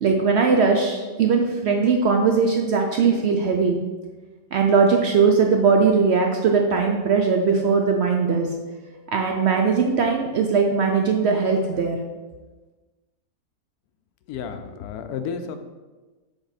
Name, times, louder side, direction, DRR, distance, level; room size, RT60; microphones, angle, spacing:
voice 1, 0.0-3.8 4.5-8.5 9.1-12.0, right 5 dB, 65° right, 2 dB, 0.7 m, -20 dB
voice 2, 14.3-15.6, left 6 dB, 90° left, 8 dB, 1.1 m, -32 dB
7.0 x 3.4 x 4.1 m, 1.3 s
omnidirectional pair, 1.6 m